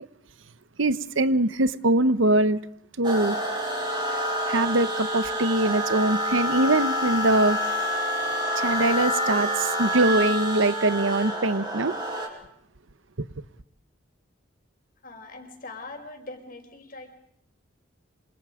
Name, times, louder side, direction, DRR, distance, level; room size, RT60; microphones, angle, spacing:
voice 1, 0.8-2.6 3.0-3.4 4.1-4.2 4.5-7.6 8.6-11.9, right 2 dB, 75° right, 1.1 m, -23 dB
sound 1, 3.0-12.3, equal, 20° right, 5.8 m, -27 dB
voice 2, 15.0-17.1, left 2 dB, 45° left, 5.1 m, -41 dB
28.5 x 27.5 x 5.1 m
head